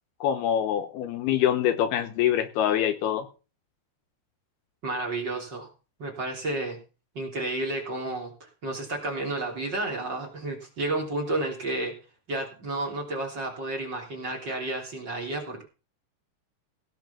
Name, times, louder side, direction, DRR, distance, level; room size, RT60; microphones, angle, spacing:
voice 1, 0.2-3.3, left 10 dB, 75° left, 10 dB, 2.7 m, -25 dB
voice 2, 4.8-5.7 6.0-6.8 7.2-11.9 12.3-15.6, right 2 dB, 25° right, 0 dB, 3.4 m, -31 dB
17.0 x 5.8 x 7.0 m, 0.34 s
omnidirectional pair, 4.9 m